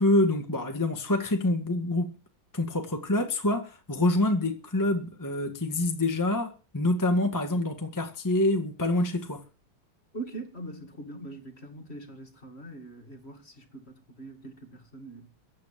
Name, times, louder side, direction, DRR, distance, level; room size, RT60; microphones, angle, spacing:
voice 1, 0.0-2.1 2.5-9.4, left 2 dB, 10° left, 1.8 m, -26 dB
voice 2, 10.1-15.3, right 2 dB, 30° left, 2.6 m, -42 dB
15.5 x 9.5 x 7.5 m
omnidirectional pair, 2.2 m